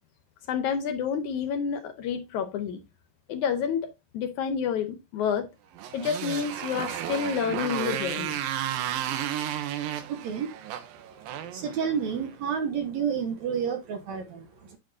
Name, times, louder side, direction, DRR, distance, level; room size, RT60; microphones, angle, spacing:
voice 1, 0.5-2.8 3.3-5.5 5.9-8.3, left 7 dB, 75° left, 2.0 m, -29 dB
Motorcycle, 5.8-12.3, right 11 dB, 85° right, 2.6 m, -33 dB
voice 2, 9.9-14.8, right 7 dB, 70° right, 1.8 m, -31 dB
9.3 x 7.2 x 2.7 m
omnidirectional pair, 3.9 m